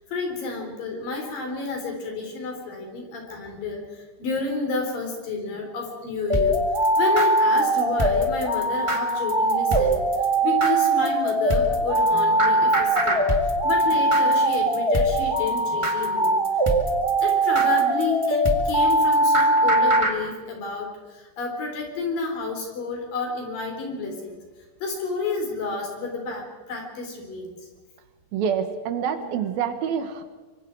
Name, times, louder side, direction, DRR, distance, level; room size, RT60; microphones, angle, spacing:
voice 1, 0.1-6.6 7.0-10.0 10.4-16.3 17.2-24.4 24.8-27.6, left 3 dB, 70° left, 2 dB, 5.7 m, -30 dB
sound 1, 6.3-20.1, right 1 dB, 15° right, 1.1 m, -21 dB
voice 2, 28.3-30.2, right 7 dB, 85° right, 8 dB, 3.3 m, -26 dB
25.0 x 24.5 x 4.7 m, 1.3 s
omnidirectional pair, 4.1 m